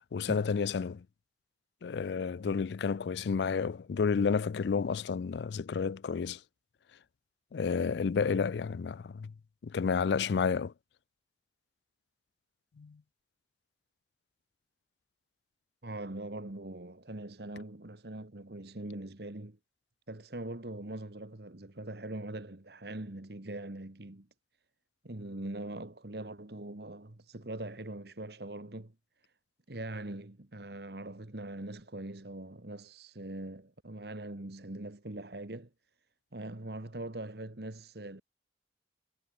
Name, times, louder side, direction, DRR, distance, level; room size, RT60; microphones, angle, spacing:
voice 1, 0.1-1.0 1.8-6.4 7.5-9.3 9.6-10.7 12.8-13.0, left 5 dB, 70° left, 0.4 m, -31 dB
voice 2, 15.8-19.6 20.1-24.3 25.0-28.9 29.7-35.7 36.3-38.2, right 1 dB, 65° right, 1.6 m, -42 dB
head